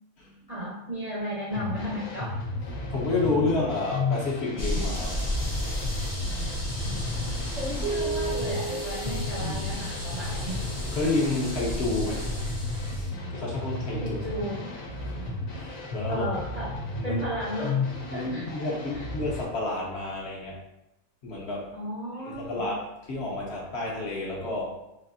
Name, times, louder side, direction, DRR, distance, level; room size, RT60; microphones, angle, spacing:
voice 1, 0.5-2.4 6.8-10.6 14.0-14.6 16.1-16.7 17.0-17.7 18.1-18.5 18.9-19.1 21.7-22.7, equal, 40° right, -6 dB, 0.6 m, -34 dB
sound 1, 1.5-19.4, left 2 dB, 85° left, 1.2 m, -34 dB
voice 2, 2.7-5.1 5.5-5.6 9.4-9.7 10.9-12.3 12.8-14.2 14.9-16.2 17.0-17.2 18.1-20.6 21.2-21.7 22.2-24.7, left 2 dB, 60° left, -3 dB, 0.9 m, -30 dB
sound 2, 4.6-13.1, left 1 dB, 25° left, 0.3 m, -33 dB
sound 3, 7.8-10.4, right 4 dB, 75° right, 1.0 m, -34 dB
4.0 x 2.6 x 2.5 m, 0.88 s
omnidirectional pair, 1.4 m